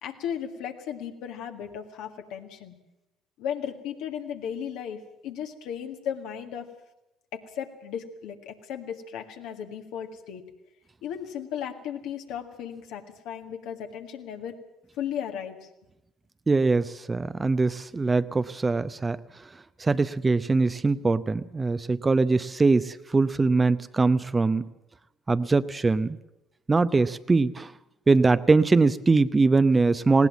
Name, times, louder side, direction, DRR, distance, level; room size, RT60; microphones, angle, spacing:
voice 1, 0.0-2.8 3.4-6.7 7.3-10.5 11.0-14.6 15.0-15.6, left 8 dB, 65° left, 5 dB, 1.8 m, -35 dB
voice 2, 16.5-19.2 19.8-24.6 25.3-26.2 26.7-27.7 28.1-30.3, right 3 dB, 25° right, 13 dB, 0.7 m, -22 dB
19.5 x 17.5 x 7.5 m, 0.91 s
hypercardioid pair, 55°, 0 cm